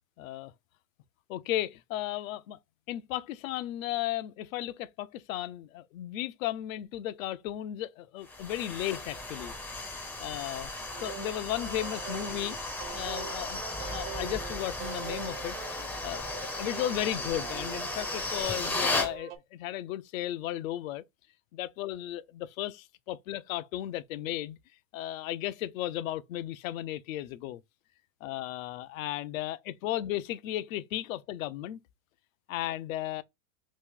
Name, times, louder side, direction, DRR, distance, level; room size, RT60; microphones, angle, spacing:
voice 1, 0.2-0.5 1.3-2.6 2.9-9.5 10.2-10.7 11.0-12.6 12.9-13.6 13.9-21.0 21.5-24.6 24.9-27.6 28.2-31.8 32.5-33.2, left 13 dB, 75° left, 0.6 m, -35 dB
sound 1, 8.3-19.1, left 2 dB, 5° left, 0.5 m, -35 dB
sound 2, 10.9-19.4, right 11 dB, 45° right, 0.6 m, -44 dB
3.1 x 2.5 x 3.6 m
supercardioid pair, 145°, 41 cm